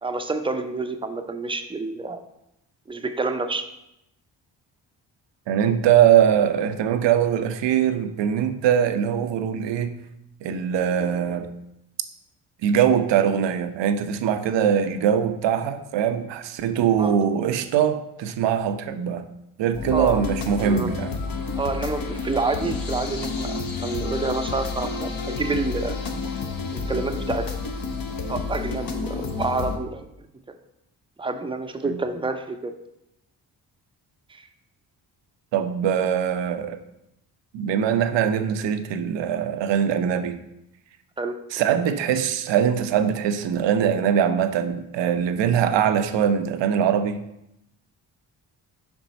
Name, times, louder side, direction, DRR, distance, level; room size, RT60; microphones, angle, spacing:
voice 1, 0.0-2.2 2.9-3.6 17.0-17.1 19.9-20.3 20.6-20.9 21.6-26.0 26.7-27.5 28.3-30.1 31.2-32.7 34.3-34.5 41.2-41.4, right 3 dB, 10° right, 7 dB, 0.6 m, -28 dB
voice 2, 5.5-10.0 10.4-11.5 12.6-19.3 19.6-21.1 35.5-36.8 37.5-40.4 41.5-47.2, right 8 dB, 70° right, 9 dB, 0.7 m, -22 dB
sound 1, 19.7-29.8, left 4 dB, 50° left, 0.9 m, -30 dB
5.3 x 4.4 x 4.0 m, 0.84 s
supercardioid pair, 50°, 45 cm